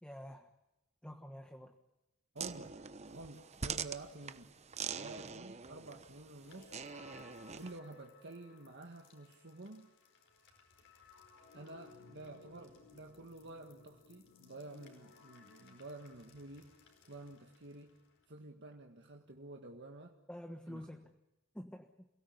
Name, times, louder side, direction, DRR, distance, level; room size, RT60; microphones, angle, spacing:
voice 1, 0.0-0.5 1.0-1.8 20.3-21.1 21.5-22.1, equal, 5° left, 5 dB, 1.3 m, -48 dB
voice 2, 2.3-2.8 3.1-7.1 7.5-9.9 11.5-16.8 17.1-18.0 18.3-20.2 20.7-20.9, right 2 dB, 55° right, 3 dB, 1.7 m, -50 dB
sound 1, 2.4-7.8, right 6 dB, 30° right, 1.0 m, -44 dB
sound 2, 6.4-18.3, left 4 dB, 60° left, 4.9 m, -61 dB
28.0 x 17.5 x 9.7 m, 0.93 s
head